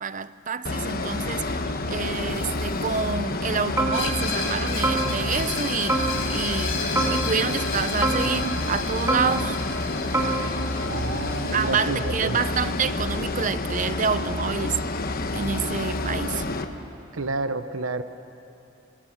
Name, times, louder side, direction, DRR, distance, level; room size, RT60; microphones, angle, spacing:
voice 1, 0.0-6.0 6.3-9.6 11.5-14.8 15.3-16.5, right 5 dB, 40° right, 14 dB, 0.6 m, -28 dB
sound 1, 0.6-16.6, left 2 dB, 50° left, 1.2 m, -29 dB
sound 2, 3.8-4.5 4.8-5.6 5.9-6.6 7.0-7.7 8.0-8.8 9.1-9.8 10.1-10.6, right 2 dB, 15° right, 2.4 m, -27 dB
Screech, 3.9-13.5, left 5 dB, 70° left, 4.9 m, -34 dB
voice 2, 10.8-12.4 17.1-18.0, right 3 dB, 85° right, 10 dB, 0.8 m, -30 dB
25.5 x 21.0 x 7.2 m, 2.9 s
head